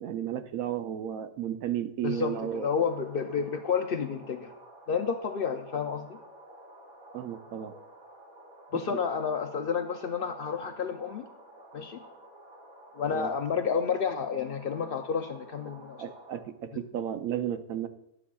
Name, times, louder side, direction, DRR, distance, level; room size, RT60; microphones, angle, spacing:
voice 1, 0.0-2.7 7.1-7.7 8.9-9.0 13.1-13.3 16.0-17.9, right 10 dB, 75° right, 9 dB, 1.0 m, -33 dB
voice 2, 2.0-4.5 4.9-6.2 8.7-11.3 11.7-12.0 13.0-16.0 16.7-16.8, left 6 dB, 70° left, 4 dB, 0.5 m, -30 dB
sound 1, 2.1-16.4, right 1 dB, 60° right, 2.7 m, -51 dB
11.0 x 9.7 x 2.3 m, 0.80 s
omnidirectional pair, 1.5 m